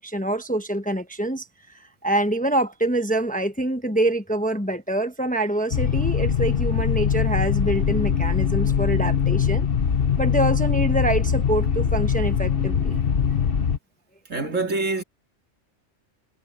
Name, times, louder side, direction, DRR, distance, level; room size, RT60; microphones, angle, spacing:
voice 1, 0.0-9.7 10.2-13.0, right 1 dB, 5° left, 1.0 m, -25 dB
sound 1, 5.7-13.8, left 7 dB, 50° left, 1.2 m, -22 dB
voice 2, 14.3-15.0, right 3 dB, 75° right, 2.6 m, -25 dB
omnidirectional pair, 1.3 m